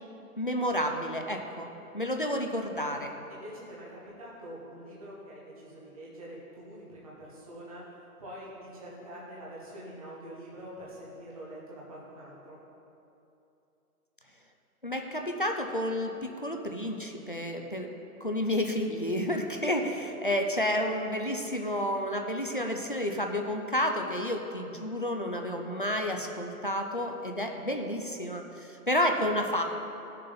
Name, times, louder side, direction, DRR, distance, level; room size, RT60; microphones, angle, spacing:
voice 1, 0.4-1.7 1.9-3.1 14.8-17.9 18.2-29.6, left 1 dB, 35° left, 3 dB, 0.4 m, -30 dB
voice 2, 3.3-7.8 8.2-12.6, equal, 25° right, -7 dB, 1.0 m, -45 dB
14.0 x 6.6 x 3.9 m, 2.8 s
hypercardioid pair, 175°, 46 cm